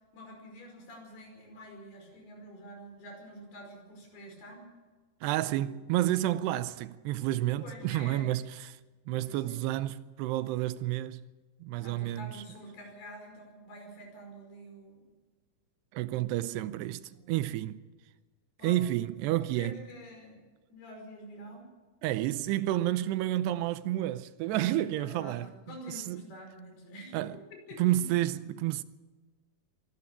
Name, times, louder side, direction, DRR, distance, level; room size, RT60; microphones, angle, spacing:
voice 1, 0.1-4.7 5.4-6.1 7.6-8.3 9.2-9.8 11.8-15.1 17.1-17.4 18.6-18.9 19.5-20.4 20.7-21.7 24.5-27.3 27.7-28.1, equal, 70° left, 7.3 m, -47 dB
voice 2, 5.2-8.8 9.1-11.3 11.6-12.4 15.9-17.0 17.3-17.8 18.6-19.8 22.0-25.5 26.0-26.2 27.1-27.4 27.8-28.8, right 14 dB, 85° right, 2.9 m, -30 dB
24.0 x 12.5 x 8.6 m
omnidirectional pair, 4.7 m